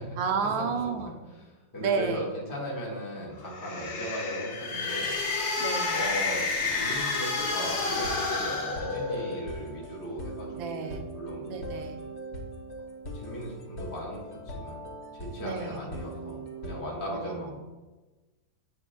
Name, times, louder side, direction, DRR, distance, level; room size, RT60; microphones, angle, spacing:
voice 1, 0.2-1.2 1.8-2.3 5.6-6.0 10.6-11.0 11.5-12.0 15.4-15.9 17.1-17.5, right 5 dB, 75° right, 5 dB, 1.4 m, -31 dB
voice 2, 1.4-5.1 5.9-11.7 13.1-14.8 15.1-17.5, equal, 10° left, -4 dB, 1.3 m, -37 dB
sound 1, 3.4-9.5, left 3 dB, 75° left, 1.9 m, -30 dB
Waterfall synth loop, 7.4-16.8, right 1 dB, 45° left, 0.9 m, -41 dB
9.6 x 5.0 x 2.2 m, 1.2 s
omnidirectional pair, 2.1 m